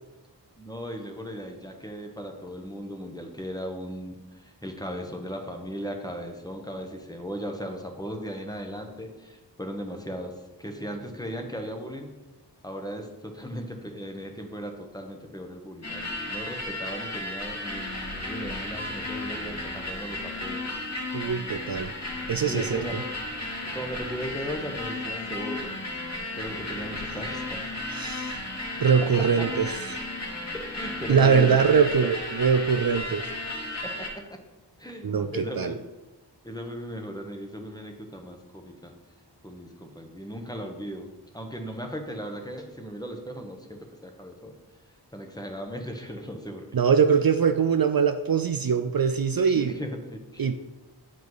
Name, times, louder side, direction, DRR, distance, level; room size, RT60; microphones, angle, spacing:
voice 1, 0.6-10.3 10.6-12.1 12.6-20.6 22.5-23.0 23.7-25.7 26.3-27.7 29.0-29.3 30.5-31.9 33.8-34.4 34.8-35.8 36.4-38.9 39.4-44.5 45.1-46.7 49.5-50.5, equal, 10° left, 3 dB, 1.1 m, -37 dB
sound 1, 15.8-34.1, left 2 dB, 40° left, 2.3 m, -34 dB
voice 2, 21.1-21.9 22.3-22.8 27.9-28.4 28.8-30.0 31.1-33.2 35.0-35.8 46.7-49.7 50.4-50.5, right 6 dB, 55° right, 8 dB, 0.5 m, -22 dB
9.0 x 5.1 x 4.0 m, 1.1 s
wide cardioid pair, 40°, 42 cm